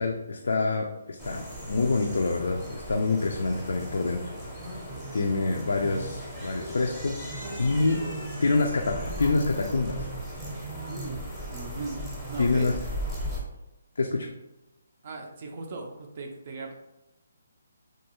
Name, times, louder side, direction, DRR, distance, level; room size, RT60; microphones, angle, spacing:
voice 1, 0.0-4.3 5.1-10.1 12.4-12.7 14.0-14.3, left 3 dB, 75° left, 1 dB, 0.3 m, -27 dB
sound 1, 1.2-13.4, right 1 dB, 5° right, 0.6 m, -37 dB
voice 2, 4.9-5.2 10.9-12.0 12.3-12.7 15.0-16.7, right 3 dB, 45° right, 2 dB, 0.3 m, -39 dB
2.6 x 2.3 x 2.9 m, 0.95 s
hypercardioid pair, 165°, 0 cm